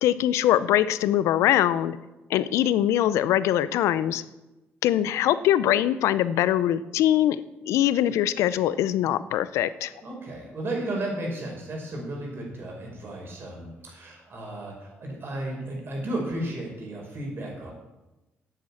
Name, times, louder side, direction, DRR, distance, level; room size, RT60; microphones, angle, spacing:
voice 1, 0.0-2.0 2.3-4.2 4.8-7.4 7.7-9.9, left 12 dB, 85° left, 15 dB, 0.5 m, -22 dB
voice 2, 10.0-17.7, right 1 dB, 50° right, 0 dB, 5.4 m, -34 dB
9.7 x 9.2 x 7.3 m, 1.0 s
cardioid pair, 70°, 5 cm